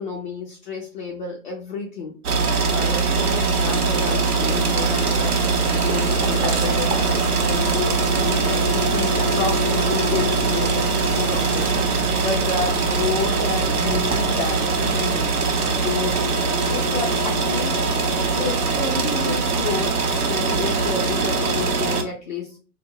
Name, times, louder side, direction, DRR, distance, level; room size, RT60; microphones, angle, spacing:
voice 1, 0.0-10.9 11.2-11.7 12.0-15.3 15.8-16.2 16.7-17.9 18.4-22.6, left 5 dB, 35° left, -2 dB, 0.4 m, -31 dB
sound 1, 2.2-22.0, right 4 dB, 80° right, 0.6 m, -22 dB
sound 2, 2.8-12.8, left 6 dB, 85° left, 0.7 m, -36 dB
sound 3, 5.8-21.8, right 3 dB, 45° right, 0.6 m, -38 dB
2.4 x 2.0 x 3.0 m, 0.37 s
figure-of-eight pair, 110°, 44 cm